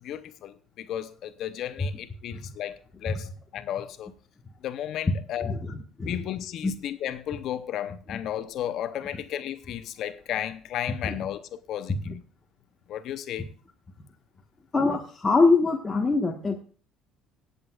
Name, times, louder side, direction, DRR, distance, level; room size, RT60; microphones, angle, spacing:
voice 1, 0.0-4.1 4.6-5.5 6.1-12.2 12.9-13.5, left 11 dB, 60° left, 0.8 m, -34 dB
voice 2, 5.4-6.2 6.6-6.7 8.1-8.2 9.1-9.2 11.0-11.1 11.9-12.1 14.7-16.6, left 3 dB, 20° left, 1.4 m, -24 dB
24.0 x 8.2 x 2.4 m
cardioid pair, 110°, 0 cm